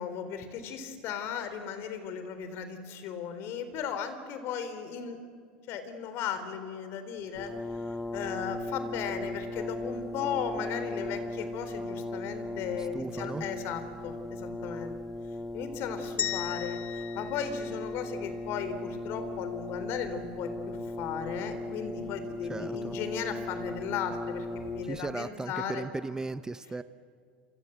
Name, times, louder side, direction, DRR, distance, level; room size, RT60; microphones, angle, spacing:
voice 1, 0.0-5.2 5.7-7.5 8.1-15.0 15.5-25.8, left 7 dB, 55° left, 10 dB, 3.8 m, -36 dB
Brass instrument, 7.3-25.1, left 2 dB, 5° left, 1.6 m, -37 dB
voice 2, 12.8-13.4 22.5-23.0 24.8-26.8, right 3 dB, 15° right, 14 dB, 0.7 m, -36 dB
sound 1, 16.2-18.4, left 10 dB, 40° left, 2.0 m, -37 dB
27.5 x 25.0 x 8.0 m, 2.2 s
supercardioid pair, 105°, 5 cm